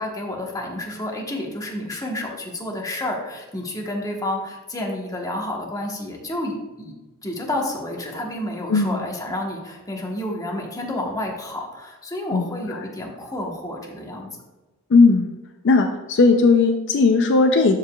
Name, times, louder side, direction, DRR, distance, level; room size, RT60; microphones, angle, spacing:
voice 1, 0.0-6.9 7.2-14.3, left 1 dB, 15° left, 0 dB, 1.1 m, -30 dB
voice 2, 8.7-9.0 12.3-12.8 14.9-15.4 15.6-17.8, left 3 dB, 55° left, 5 dB, 0.4 m, -17 dB
12.5 x 4.8 x 2.3 m, 1.1 s
head